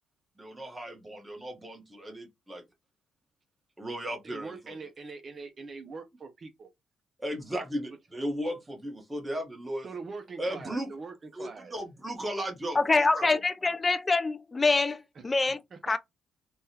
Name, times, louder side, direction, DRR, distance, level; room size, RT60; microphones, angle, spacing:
voice 1, 0.4-2.6 3.8-4.7 7.2-9.9 10.4-10.9 11.4-13.3, equal, 15° right, 1.1 m, -36 dB
voice 2, 4.2-6.7 9.8-11.7 15.7-16.0, right 4 dB, 45° right, 0.5 m, -43 dB
voice 3, 12.7-16.0, left 3 dB, 25° left, 0.4 m, -25 dB
3.4 x 2.2 x 2.8 m
cardioid pair, 90°, 0 cm